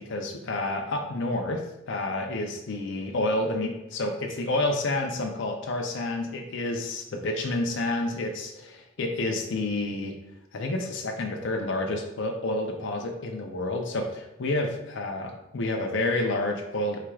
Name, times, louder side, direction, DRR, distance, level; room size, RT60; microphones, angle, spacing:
voice 1, 0.0-1.6 1.9-10.1 10.5-17.0, left 2 dB, 60° left, 2 dB, 0.5 m, -29 dB
4.8 x 4.4 x 2.3 m, 0.92 s
head